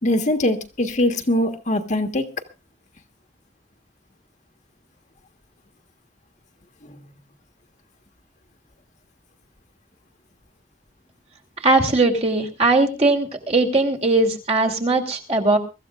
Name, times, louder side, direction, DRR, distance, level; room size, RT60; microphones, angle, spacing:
voice 1, 0.0-2.3, left 1 dB, 45° left, 6 dB, 1.4 m, -22 dB
voice 2, 11.6-15.6, right 2 dB, 35° right, 2 dB, 2.8 m, -19 dB
23.0 x 14.0 x 2.5 m, 0.30 s
head